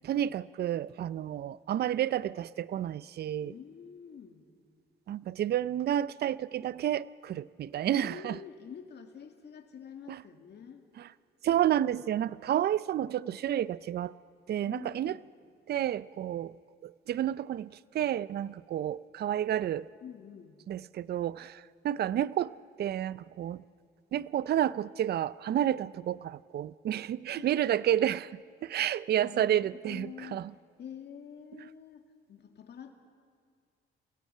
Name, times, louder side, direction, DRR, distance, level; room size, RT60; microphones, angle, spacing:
voice 1, 0.0-3.5 5.1-8.4 10.1-10.2 11.0-11.1 11.4-14.1 14.5-15.2 15.7-16.5 16.8-17.7 17.9-19.9 20.7-22.5 22.8-23.6 24.1-28.3 28.6-30.5, right 11 dB, 55° right, 0.5 m, -30 dB
voice 2, 3.4-4.5 7.8-10.8 14.6-15.3 20.0-20.6 27.3-27.7 29.2-30.5 30.8-32.9, left 7 dB, 60° left, 2.1 m, -47 dB
29.5 x 17.0 x 5.6 m
cardioid pair, 90°, 20 cm